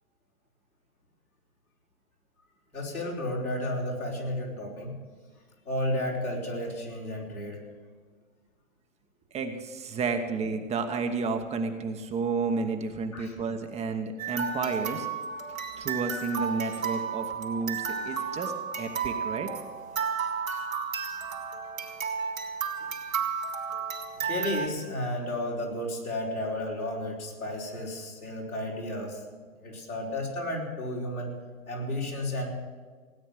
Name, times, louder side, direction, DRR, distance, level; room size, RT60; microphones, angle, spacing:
voice 1, 2.7-5.0 5.6-7.6 13.1-13.3 24.2-29.2 29.6-31.3 31.7-32.5, left 1 dB, 85° left, -3 dB, 5.1 m, -32 dB
voice 2, 9.3-15.1 15.8-19.5, right 4 dB, 15° right, 6 dB, 1.0 m, -31 dB
sound 1, 14.2-24.7, right 6 dB, 70° right, 3.2 m, -33 dB
17.0 x 9.8 x 7.6 m, 1.5 s
figure-of-eight pair, 115°, 41 cm